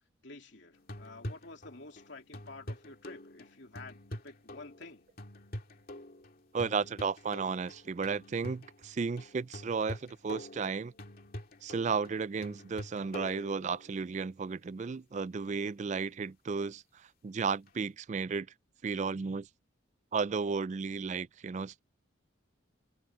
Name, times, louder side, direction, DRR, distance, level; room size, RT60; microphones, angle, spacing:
voice 1, 0.2-5.1, left 3 dB, 60° left, 3.0 m, -50 dB
sound 1, 0.7-14.1 17.7-17.8, left 1 dB, 45° left, 2.5 m, -46 dB
voice 2, 6.5-10.9 11.6-18.5 18.8-19.5 20.1-21.8, right 5 dB, 35° right, 0.3 m, -34 dB
head